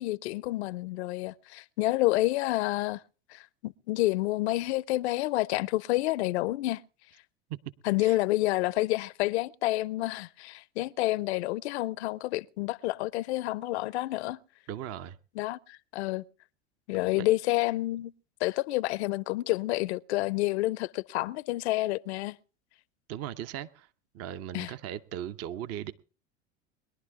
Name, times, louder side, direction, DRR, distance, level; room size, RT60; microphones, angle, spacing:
voice 1, 0.0-3.0 3.3-6.8 7.8-14.4 15.4-16.2 16.9-18.1 18.4-22.4 24.5-24.7, left 18 dB, 65° left, 0.6 m, -29 dB
voice 2, 14.7-15.2 17.2-17.3 23.1-23.9 24.1-25.9, right 11 dB, 45° right, 0.9 m, -38 dB
22.0 x 11.5 x 3.6 m
hypercardioid pair, 90°, 35 cm